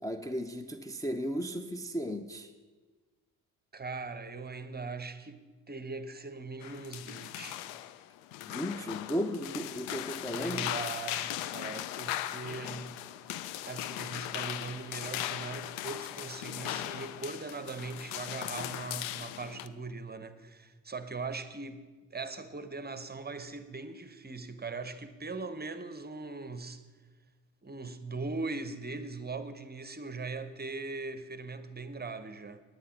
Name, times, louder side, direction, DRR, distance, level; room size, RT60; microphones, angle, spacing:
voice 1, 0.0-2.5 8.5-10.7, equal, 10° left, 0.6 m, -35 dB
voice 2, 3.7-5.4 5.7-7.7 10.2-13.0 13.7-21.8 22.1-26.8 27.6-32.6, right 3 dB, 20° right, 0.9 m, -40 dB
sound 1, 6.6-19.7, left 13 dB, 80° left, 0.6 m, -38 dB
9.6 x 9.3 x 5.8 m
hypercardioid pair, 50°, 44 cm